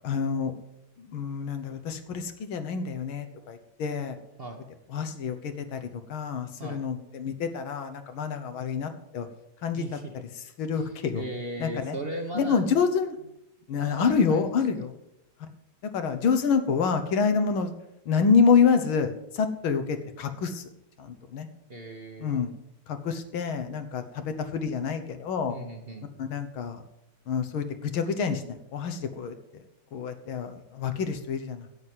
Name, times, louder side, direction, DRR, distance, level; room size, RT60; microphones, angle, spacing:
voice 1, 0.0-0.5 1.0-4.2 4.9-9.3 9.6-9.8 10.6-11.2 11.6-12.0 12.3-13.2 13.7-15.0 15.9-17.7 18.1-20.7 21.0-21.5 22.2-22.5 22.9-25.6 26.2-26.8 27.3-29.6 29.9-31.7, left 6 dB, 80° left, 8 dB, 2.0 m, -27 dB
voice 2, 9.7-10.1 10.7-12.7 13.7-14.5 21.7-22.4 25.5-26.0, right 1 dB, 35° right, 4 dB, 1.1 m, -37 dB
10.5 x 8.2 x 7.7 m, 0.86 s
omnidirectional pair, 2.2 m